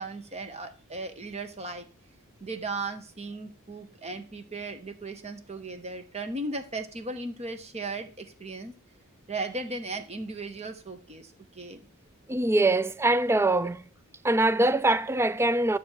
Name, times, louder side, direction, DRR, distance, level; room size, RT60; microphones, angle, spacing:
voice 1, 0.0-1.9 2.4-8.7 9.3-11.9, right 3 dB, 30° right, 1.5 m, -36 dB
voice 2, 12.3-13.8 14.2-15.8, right 2 dB, 10° right, 0.4 m, -23 dB
12.0 x 7.3 x 4.7 m
head